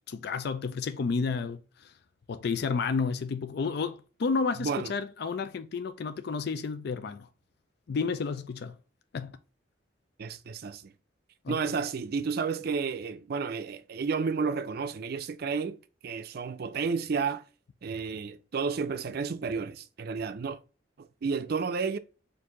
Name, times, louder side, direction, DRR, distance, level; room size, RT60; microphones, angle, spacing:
voice 1, 0.1-1.9 2.3-7.3 7.9-8.7 9.1-9.3 11.4-11.6, left 5 dB, 60° left, 0.4 m, -31 dB
voice 2, 4.6-4.9 10.2-10.9 11.5-15.8 16.0-17.4 17.8-20.6 21.0-22.0, right 5 dB, 55° right, 0.4 m, -31 dB
4.6 x 2.6 x 3.7 m
head